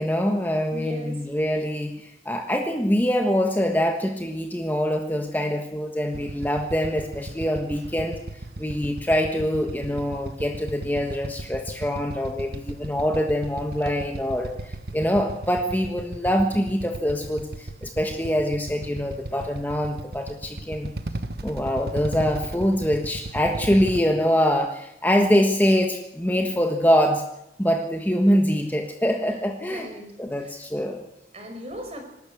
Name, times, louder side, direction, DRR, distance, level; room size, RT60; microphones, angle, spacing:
voice 1, 0.0-8.2 8.6-20.9 21.4-27.2 27.6-29.9 30.2-31.0, equal, 10° left, 3 dB, 1.4 m, -24 dB
voice 2, 0.7-1.2 29.6-30.5 31.0-32.0, left 1 dB, 35° right, 4 dB, 5.1 m, -38 dB
Motorcycle / Idling, 6.1-24.0, right 2 dB, 60° right, 1.2 m, -36 dB
25.5 x 12.5 x 8.4 m, 0.87 s
head